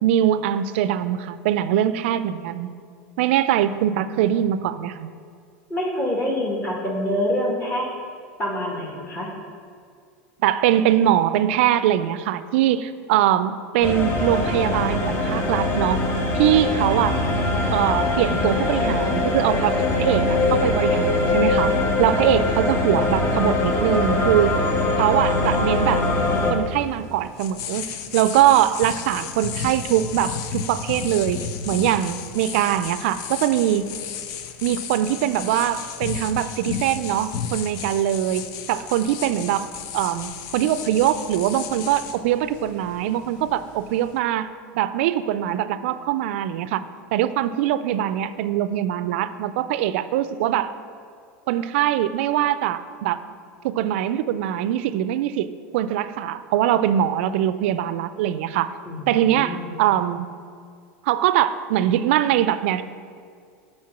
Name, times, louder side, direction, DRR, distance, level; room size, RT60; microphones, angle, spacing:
voice 1, 0.0-2.7 3.2-5.1 10.4-16.0 16.3-17.2 17.7-21.7 22.0-24.6 25.0-26.0 26.5-33.9 34.6-39.7 39.9-44.5 44.7-46.8 47.1-50.7 51.5-53.2 53.6-58.7 59.1-60.3 61.1-62.8, right 11 dB, 70° right, 14 dB, 0.4 m, -22 dB
voice 2, 3.6-4.3 5.7-7.9 8.4-9.3 58.9-59.8, equal, 25° left, -3 dB, 1.6 m, -27 dB
sound 1, 13.8-26.5, left 2 dB, 40° left, 1.4 m, -22 dB
sound 2, 25.8-44.2, left 7 dB, 55° left, 0.6 m, -34 dB
7.4 x 4.4 x 5.9 m, 2.2 s
supercardioid pair, 110°, 7 cm